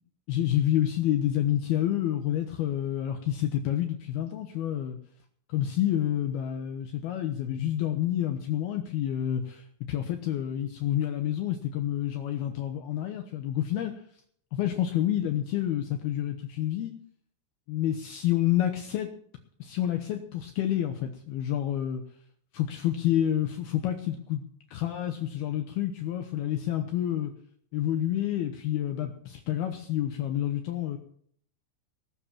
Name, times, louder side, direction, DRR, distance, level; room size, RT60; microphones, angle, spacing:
voice 1, 0.3-5.0 5.5-14.0 14.5-17.0 17.7-19.1 19.6-22.0 22.5-24.4 24.7-27.3 27.7-31.0, left 11 dB, 85° left, 5 dB, 2.2 m, -28 dB
20.0 x 7.0 x 7.2 m, 0.64 s
omnidirectional pair, 5.7 m